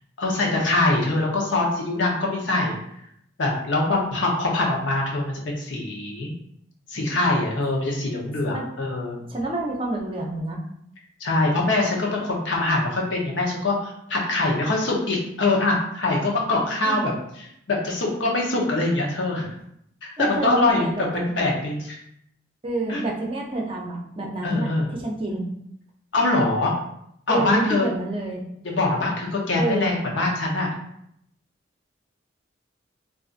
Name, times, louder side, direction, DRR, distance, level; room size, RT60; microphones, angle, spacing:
voice 1, 0.2-2.8 3.4-6.3 6.9-9.2 11.2-17.1 17.4-19.5 20.0-20.9 21.4-22.0 22.9-23.0 24.4-24.9 26.1-26.7 27.3-27.9 28.6-30.7, left 2 dB, 90° left, -1 dB, 0.8 m, -23 dB
voice 2, 9.3-10.6 16.8-17.1 20.2-21.3 22.6-24.7 25.0-25.5 27.3-28.4 29.6-30.0, right 2 dB, 30° right, -1 dB, 0.5 m, -28 dB
3.8 x 2.5 x 2.4 m, 0.74 s
head